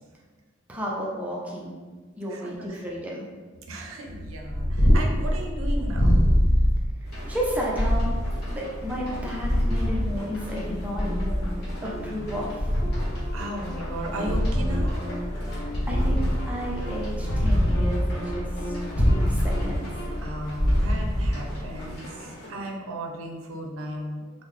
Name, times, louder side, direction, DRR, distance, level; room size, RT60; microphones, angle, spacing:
voice 1, 0.7-1.8 2.2-3.2 7.0-8.1 8.5-11.4 11.8-12.8 15.6-19.9, equal, 5° right, -4 dB, 0.5 m, -33 dB
voice 2, 2.3-2.8 3.7-6.1 13.3-15.1 20.2-24.3, right 1 dB, 75° right, 2 dB, 0.5 m, -35 dB
Purr, 4.3-22.0, equal, 75° left, 0.6 m, -25 dB
sound 1, 7.0-22.5, equal, 50° left, 1.0 m, -43 dB
sound 2, 9.1-20.1, equal, 25° left, 1.0 m, -38 dB
3.7 x 2.1 x 3.1 m, 1.4 s
head